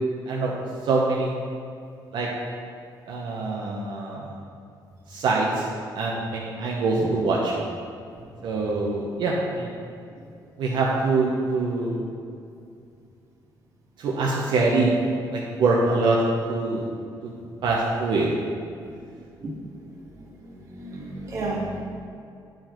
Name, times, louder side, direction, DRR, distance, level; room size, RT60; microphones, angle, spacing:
voice 1, 0.8-1.3 2.1-2.3 3.1-4.3 5.1-5.7 5.9-7.5 8.4-9.7 10.6-12.0 14.0-14.9 15.3-16.2 16.5-16.8 17.2-17.3 17.6-18.3, right 3 dB, 70° right, -3 dB, 0.9 m, -24 dB
voice 2, 18.9-19.5 20.2-21.8, right 2 dB, 40° right, -4 dB, 1.6 m, -34 dB
9.3 x 4.8 x 4.5 m, 2.5 s
cardioid pair, 160°, 8 cm